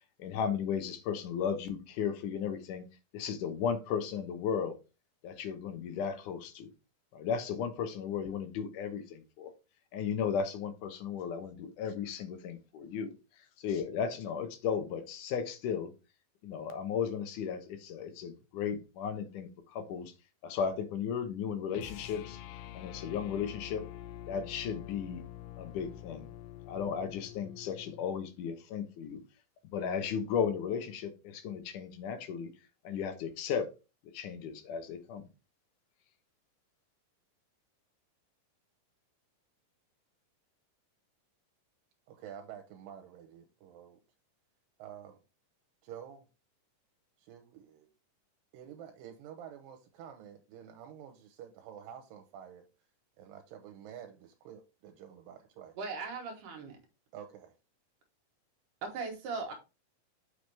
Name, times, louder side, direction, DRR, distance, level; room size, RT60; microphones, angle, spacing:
voice 1, 0.2-2.8 3.1-4.8 5.2-6.7 7.1-9.5 9.9-15.9 16.4-20.1 20.4-22.4 22.7-23.8 24.3-25.2 25.6-26.3 26.7-29.2 29.7-32.5 32.8-33.7 34.1-35.3, left 7 dB, 70° left, 2.5 m, -35 dB
sound 1, 21.7-28.1, left 13 dB, 90° left, 2.4 m, -46 dB
voice 2, 42.1-44.0 44.8-45.2 45.8-46.3 47.2-47.9 48.5-52.7 53.2-55.7 57.1-57.5, right 9 dB, 90° right, 2.5 m, -49 dB
voice 3, 55.8-56.8 58.8-59.5, right 4 dB, 75° right, 2.7 m, -38 dB
6.4 x 5.9 x 3.4 m
omnidirectional pair, 3.9 m